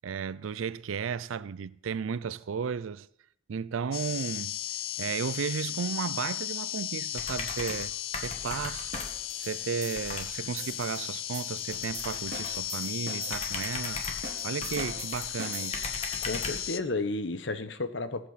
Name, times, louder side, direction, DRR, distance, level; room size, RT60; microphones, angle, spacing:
voice 1, 0.0-3.1 3.5-4.6 5.0-7.9 8.2-8.9 9.3-14.0 14.4-15.9, right 6 dB, 90° right, 0.4 m, -34 dB
sound 1, 3.9-16.8, left 12 dB, 85° left, 0.6 m, -36 dB
sound 2, 7.1-7.9 8.1-9.3 9.9-10.3 11.7-12.7 13.3-15.3 15.7-16.7, left 3 dB, 35° left, 1.7 m, -38 dB
sound 3, 8.9-16.0, right 5 dB, 50° right, 1.6 m, -44 dB
voice 2, 16.2-18.3, left 2 dB, 65° left, 1.0 m, -32 dB
20.5 x 7.9 x 4.1 m
head